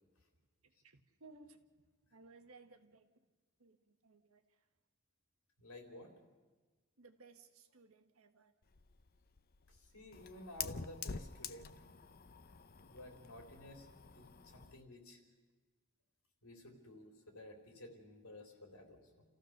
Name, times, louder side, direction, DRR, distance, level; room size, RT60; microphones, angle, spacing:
voice 1, 0.6-1.6 2.1-3.1 3.6-4.6 7.0-8.5, right 3 dB, 70° right, 7 dB, 1.5 m, -61 dB
voice 2, 5.6-6.2 9.7-11.8 12.9-13.9 14.1-15.2 16.4-19.2, left 1 dB, 75° left, 3 dB, 3.8 m, -53 dB
Fire, 8.6-14.8, left 6 dB, 45° left, 0.7 m, -48 dB
29.0 x 14.5 x 6.6 m, 1.3 s
head